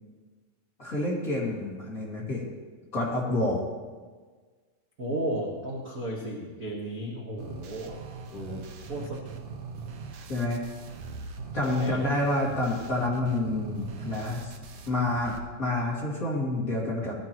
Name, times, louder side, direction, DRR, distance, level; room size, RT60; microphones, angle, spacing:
voice 1, 0.8-2.4 2.9-3.6 8.3-8.6 10.3-10.7 11.5-14.5 14.9-17.1, left 2 dB, 30° left, -5 dB, 1.9 m, -28 dB
voice 2, 5.0-8.0 8.8-9.2 11.6-12.0, right 1 dB, 65° right, -4 dB, 0.8 m, -34 dB
sound 1, 7.4-15.4, right 5 dB, 85° right, 1.3 m, -41 dB
18.0 x 12.0 x 3.0 m, 1.4 s
omnidirectional pair, 4.1 m